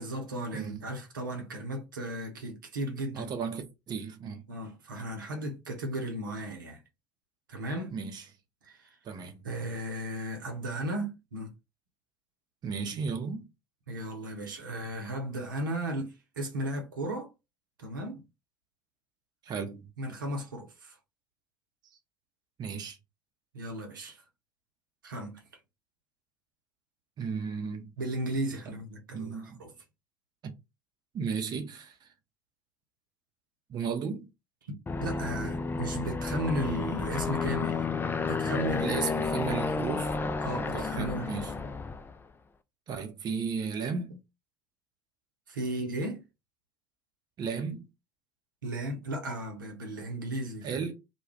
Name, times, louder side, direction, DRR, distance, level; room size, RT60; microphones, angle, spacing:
voice 1, 0.0-3.3 4.5-6.8 7.5-7.9 8.6-9.0 9.4-11.5 13.9-17.3 17.8-18.2 20.0-21.0 23.5-24.2 25.0-25.4 28.0-29.7 34.7-37.8 38.3-39.0 40.4-41.5 45.5-46.2 48.6-50.8, right 1 dB, 85° right, 0.7 m, -35 dB
voice 2, 0.5-0.9 3.1-4.5 7.9-8.2 9.0-9.4 12.6-13.5 19.4-19.9 22.6-23.0 27.2-27.9 29.1-29.6 30.4-30.5 31.1-32.1 33.7-34.3 38.8-40.2 40.7-41.6 42.9-44.2 47.4-47.9 50.6-50.9, right 5 dB, 40° right, 0.6 m, -34 dB
Aircraft, 34.9-42.2, left 4 dB, 20° left, 0.4 m, -31 dB
2.3 x 2.2 x 3.2 m
figure-of-eight pair, 60°, 11 cm